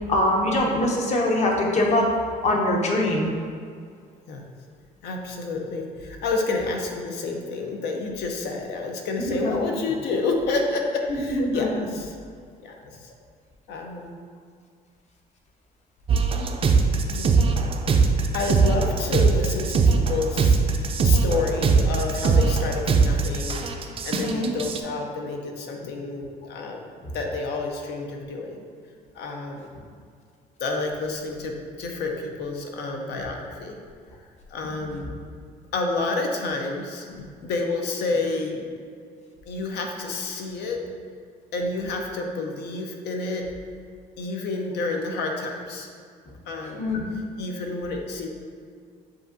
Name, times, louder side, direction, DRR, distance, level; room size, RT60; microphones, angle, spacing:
voice 1, 0.1-2.1 2.4-3.3 9.3-9.6 11.2-11.8 24.1-24.5 46.8-47.0, left 1 dB, 40° left, 0 dB, 0.9 m, -23 dB
voice 2, 5.0-12.1 12.6-13.1 13.7-14.2 17.1-17.5 18.0-23.7 24.0-26.9 27.1-28.6 29.1-29.7 30.6-33.8 34.5-35.1 35.7-38.7 39.5-40.8 41.5-43.5 44.2-45.9 46.5-46.9 47.4-48.3, left 3 dB, 75° left, 2 dB, 0.7 m, -29 dB
sound 1, 16.1-24.8, right 4 dB, 35° right, 0.4 m, -21 dB
7.5 x 2.5 x 2.6 m, 2.2 s
cardioid pair, 110°, 17 cm